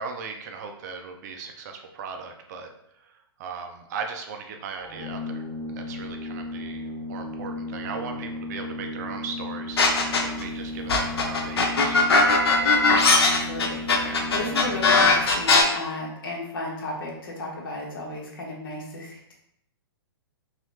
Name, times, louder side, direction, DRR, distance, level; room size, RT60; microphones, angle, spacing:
voice 1, 0.0-2.7 3.4-5.4 5.7-6.8 7.1-9.9 10.2-12.4 14.0-14.3, right 5 dB, 45° right, 4 dB, 0.4 m, -37 dB
Organ, 4.8-15.5, left 2 dB, 40° left, 1.1 m, -35 dB
sound 1, 9.8-10.4 10.9-15.6, left 4 dB, 75° left, 0.6 m, -19 dB
voice 2, 13.4-19.3, left 2 dB, 60° left, -2 dB, 1.1 m, -34 dB
3.0 x 2.8 x 2.8 m, 0.76 s
hypercardioid pair, 125°, 13 cm